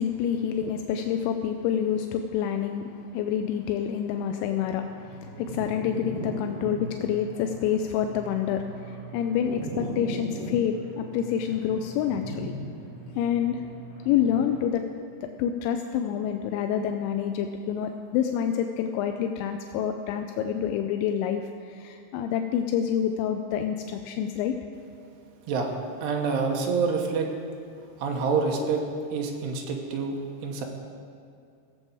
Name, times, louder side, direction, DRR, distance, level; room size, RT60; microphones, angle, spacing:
voice 1, 0.0-12.5 13.2-13.6 14.1-14.8 15.2-24.6, left 9 dB, 85° left, 6 dB, 2.8 m, -28 dB
sound 1, 4.6-14.6, right 2 dB, 55° right, 4.9 m, -39 dB
voice 2, 25.5-27.3 28.0-28.8 29.1-30.7, right 5 dB, 70° right, 1 dB, 3.0 m, -27 dB
17.0 x 7.4 x 5.4 m, 2.4 s
omnidirectional pair, 5.4 m